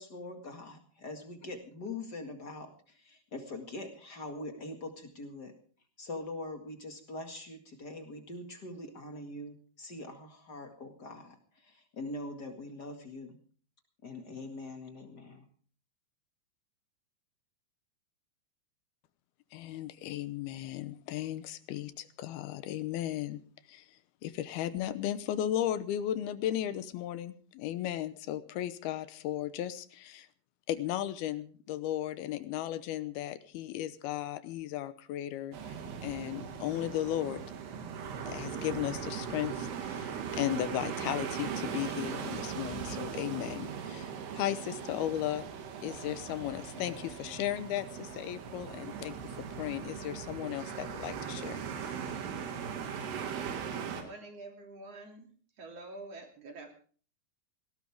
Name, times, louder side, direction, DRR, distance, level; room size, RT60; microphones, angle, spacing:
voice 1, 0.0-5.5 6.0-13.4 14.0-15.5, left 2 dB, 35° left, 4 dB, 1.7 m, -43 dB
voice 2, 19.5-30.3 30.7-37.4 38.3-45.5 45.8-49.1 49.6-51.6, left 12 dB, 80° left, 13 dB, 2.7 m, -35 dB
sound 1, 35.5-54.0, right 7 dB, 85° right, 4.0 m, -39 dB
voice 3, 53.7-55.3 55.6-56.8, right 2 dB, 40° right, 3 dB, 3.5 m, -47 dB
19.0 x 17.5 x 3.6 m, 0.43 s
omnidirectional pair, 4.6 m